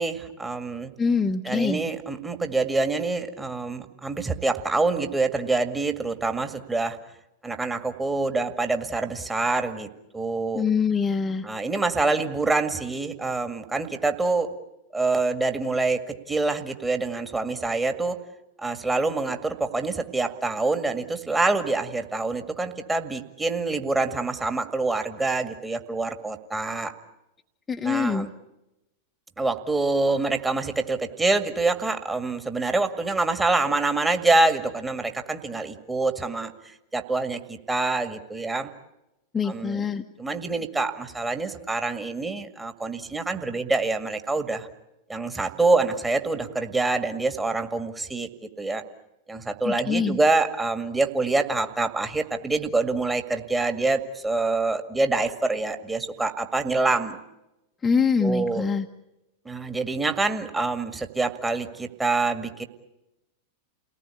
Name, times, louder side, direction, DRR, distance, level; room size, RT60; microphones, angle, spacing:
voice 1, 0.0-0.9 1.4-7.0 7.4-9.9 10.1-10.6 11.4-14.5 14.9-18.2 18.6-26.9 27.8-28.3 29.4-36.5 36.9-38.7 39.4-39.8 40.2-44.7 45.1-48.3 48.6-48.8 49.3-57.2 58.2-58.7 59.5-62.6, right 3 dB, 10° right, 7 dB, 2.0 m, -26 dB
voice 2, 1.0-1.8 10.5-11.5 27.7-28.3 39.3-40.0 49.6-50.2 57.8-58.9, left 5 dB, 15° left, 3 dB, 1.1 m, -24 dB
29.5 x 18.5 x 8.5 m, 0.94 s
figure-of-eight pair, 90°, 0 cm